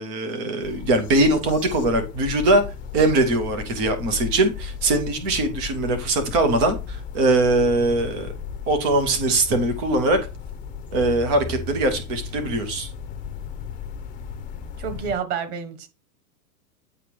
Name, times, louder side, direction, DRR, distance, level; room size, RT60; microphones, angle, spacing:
voice 1, 0.0-2.6 2.9-8.3 8.7-10.2 10.9-12.9, right 2 dB, 10° right, 0.3 m, -21 dB
sound 1, 0.6-15.2, left 7 dB, 15° left, 0.7 m, -35 dB
voice 2, 14.8-15.9, right 7 dB, 40° right, 1.6 m, -29 dB
8.6 x 4.9 x 4.5 m
hypercardioid pair, 140°, 48 cm